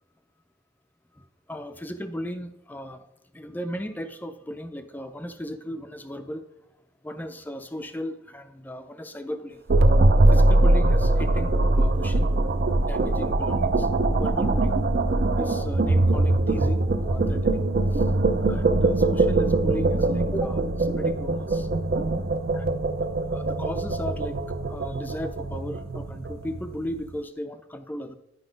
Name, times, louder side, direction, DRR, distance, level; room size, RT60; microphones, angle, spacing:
voice 1, 1.1-3.1 3.3-6.5 7.0-9.6 10.3-12.3 12.8-13.9 14.2-14.8 15.4-17.6 17.9-18.1 18.5-21.7 22.2-24.4 24.7-28.1, equal, 10° left, 8 dB, 0.4 m, -36 dB
sound 1, 9.7-26.9, right 2 dB, 50° right, 0.5 m, -22 dB
10.0 x 4.0 x 5.1 m, 0.85 s
head